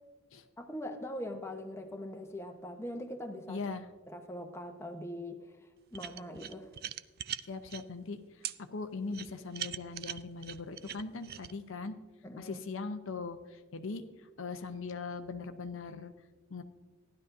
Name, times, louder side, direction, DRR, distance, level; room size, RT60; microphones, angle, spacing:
voice 1, 0.6-3.6 4.1-5.5 5.9-6.7 12.2-12.6, left 1 dB, 15° left, 4 dB, 0.9 m, -41 dB
voice 2, 3.5-3.9 7.5-8.2 8.7-11.9 12.4-14.0 14.4-16.1 16.5-16.6, left 4 dB, 65° left, 8 dB, 0.7 m, -40 dB
sound 1, 5.9-7.8 8.4-8.6 9.1-11.5, right 11 dB, 50° right, 0.3 m, -40 dB
15.5 x 11.5 x 2.6 m, 1.3 s
head